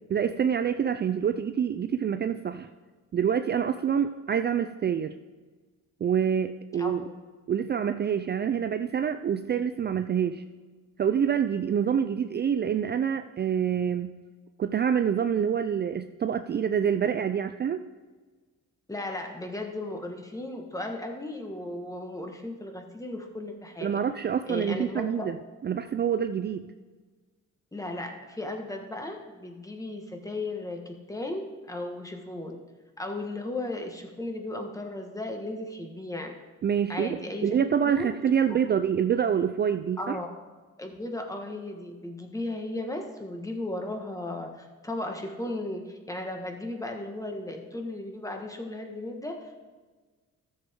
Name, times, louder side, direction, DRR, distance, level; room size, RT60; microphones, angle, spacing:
voice 1, 0.1-2.7 3.1-5.1 6.0-7.0 7.5-10.4 11.0-14.1 14.6-17.8 23.8-25.4 25.6-26.7 36.6-40.2, right 8 dB, 35° right, 9 dB, 0.4 m, -26 dB
voice 2, 6.8-7.1 18.9-24.0 24.5-25.3 27.7-32.6 33.0-36.3 36.9-38.1 38.5-38.6 40.0-40.3 40.8-49.7, left 2 dB, 10° left, 3 dB, 1.5 m, -36 dB
13.5 x 6.9 x 3.7 m, 1.3 s
cardioid pair, 90°, 30 cm